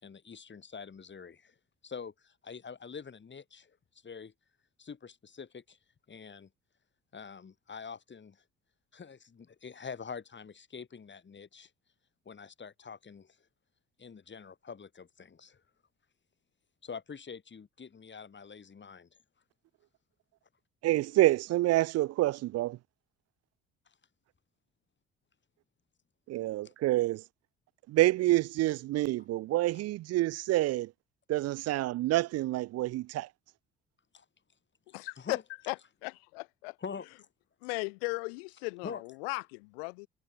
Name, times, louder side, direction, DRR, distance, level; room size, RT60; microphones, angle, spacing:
voice 1, 0.0-1.5 1.8-3.8 4.0-4.3 4.8-5.8 6.1-6.5 7.1-8.4 8.9-11.7 12.2-13.4 14.0-15.6 16.8-19.1 23.9-24.0 26.6-26.7 34.1-34.2 34.9-35.4 36.8-37.1 38.8-39.0, left 6 dB, 40° left, 4.5 m, -45 dB
voice 2, 20.8-22.8 26.3-27.2 27.9-30.9 31.3-33.3, right 16 dB, 60° right, 0.5 m, -27 dB
voice 3, 34.9-35.4 35.7-35.8 36.0-36.8 37.6-40.1, left 31 dB, 85° left, 1.4 m, -36 dB
hypercardioid pair, 55°, 29 cm